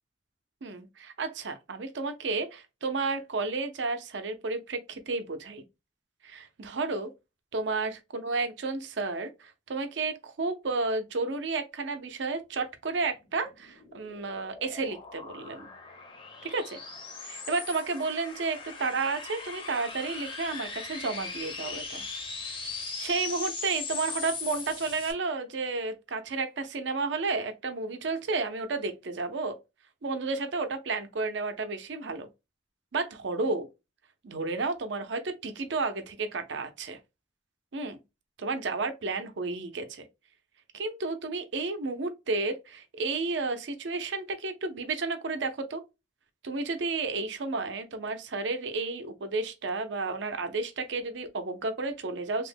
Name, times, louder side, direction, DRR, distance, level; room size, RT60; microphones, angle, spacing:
voice 1, 0.6-5.6 6.2-7.1 7.5-15.7 16.4-16.8 17.2-22.1 23.0-29.6 30.0-32.3 32.9-33.7 34.2-37.0 37.7-38.0 38.4-40.1 40.7-45.8 46.4-52.5, right 3 dB, 75° right, 0.6 m, -32 dB
sound 1, 13.3-25.1, left 4 dB, 30° left, 0.6 m, -39 dB
2.9 x 2.1 x 3.2 m
head